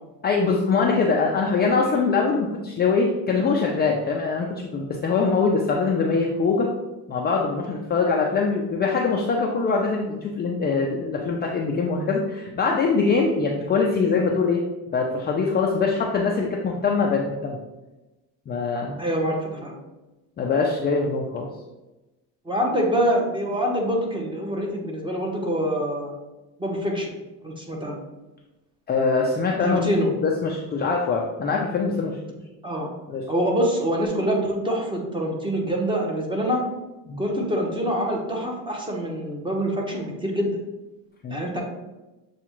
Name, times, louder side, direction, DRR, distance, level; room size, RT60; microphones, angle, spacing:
voice 1, 0.2-6.7 7.1-14.6 14.9-17.6 18.5-19.0 20.4-21.5 28.9-29.8 30.2-32.4 33.1-33.2 37.1-37.2 41.2-41.4, left 4 dB, 25° left, 0 dB, 0.4 m, -23 dB
voice 2, 19.0-19.7 22.4-26.1 26.6-27.2 27.4-28.0 29.6-30.1 32.6-32.9 33.3-36.6 37.2-40.5 41.3-41.6, equal, 10° right, 0 dB, 0.9 m, -25 dB
7.0 x 2.4 x 3.0 m, 1.1 s
cardioid pair, 115°, 42 cm